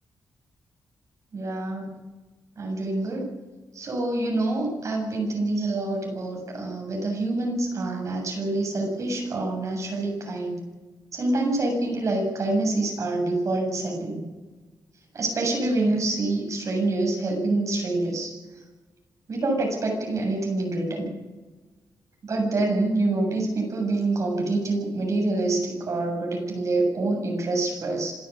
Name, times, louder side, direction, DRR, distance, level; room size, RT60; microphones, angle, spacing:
voice 1, 1.3-1.9 2.6-3.3 3.7-10.6 11.1-14.2 15.1-18.4 19.3-21.1 22.2-28.2, right 2 dB, 50° right, 1 dB, 7.6 m, -26 dB
27.0 x 12.0 x 8.7 m, 1.2 s
cardioid pair, 115°, 7 cm